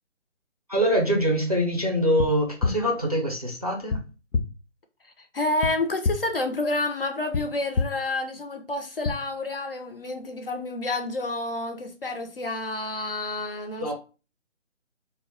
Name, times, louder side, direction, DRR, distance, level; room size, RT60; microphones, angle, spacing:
voice 1, 0.7-4.0 13.8-13.9, equal, 35° right, 0.4 m, -24 dB
sound 1, 2.2-2.3 2.6-2.7 3.9-4.0 4.3-4.4 5.6-5.7 6.0-6.1 7.3-7.4 7.7-7.8 9.0-9.1, left 4 dB, 85° left, 0.7 m, -24 dB
voice 2, 5.0-13.9, left 2 dB, 50° left, 0.4 m, -29 dB
2.1 x 2.0 x 3.7 m
figure-of-eight pair, 160°, 37 cm